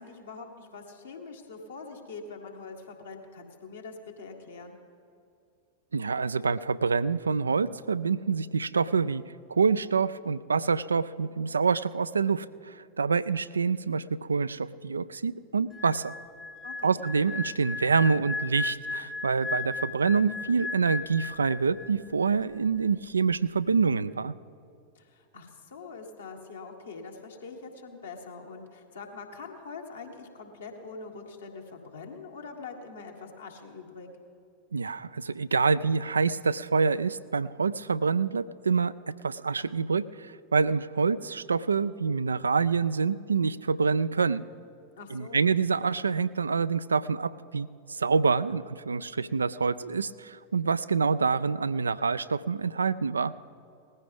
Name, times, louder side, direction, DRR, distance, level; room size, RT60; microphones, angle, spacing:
voice 1, 0.0-4.8 16.6-17.0 25.0-34.1 45.0-45.5, left 4 dB, 70° left, 1 dB, 1.8 m, -44 dB
voice 2, 5.9-9.2 9.5-16.2 16.8-24.3 34.7-38.9 39.2-44.4 45.1-53.3, right 5 dB, 75° right, 16 dB, 0.3 m, -26 dB
sound 1, 15.7-22.1 22.3-22.6, left 3 dB, 20° left, 0.6 m, -36 dB
19.0 x 15.0 x 3.5 m, 2.5 s
figure-of-eight pair, 90°, 0 cm